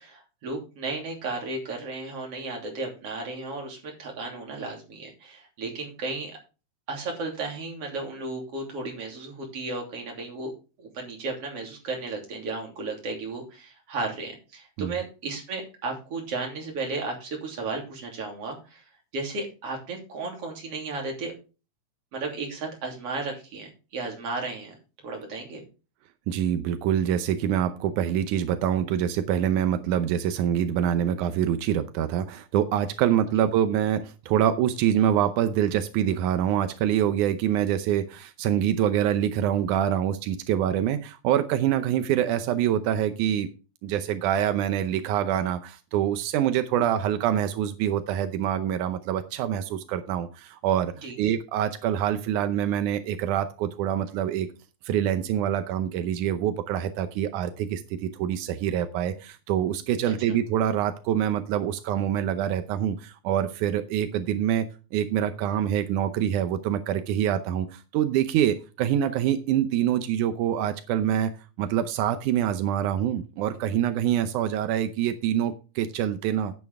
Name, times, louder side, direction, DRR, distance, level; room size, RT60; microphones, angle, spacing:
voice 1, 0.0-6.4 6.9-10.5 10.8-18.8 19.1-21.3 22.1-25.6 51.0-51.2 60.0-60.1, right 3 dB, 50° right, 1 dB, 3.8 m, -34 dB
voice 2, 26.3-43.5 43.8-54.5 54.8-64.7 64.9-71.3 71.6-76.5, right 10 dB, 90° right, 9 dB, 2.3 m, -25 dB
10.5 x 9.5 x 3.5 m, 0.32 s
omnidirectional pair, 3.4 m